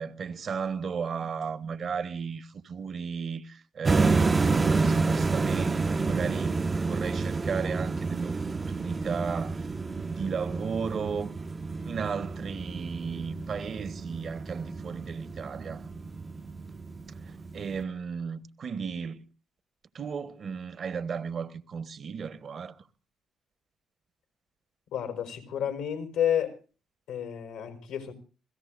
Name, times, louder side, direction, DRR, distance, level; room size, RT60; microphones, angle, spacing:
voice 1, 0.0-9.7 9.9-11.3 11.8-15.9 17.2-19.2 19.9-22.8, right 6 dB, 55° right, 1.2 m, -35 dB
sound 1, 3.8-17.8, right 4 dB, 35° right, 0.7 m, -29 dB
voice 2, 24.9-26.6 27.1-28.1, left 9 dB, 85° left, 4.6 m, -30 dB
28.0 x 17.0 x 2.6 m
hypercardioid pair, 55°, 0 cm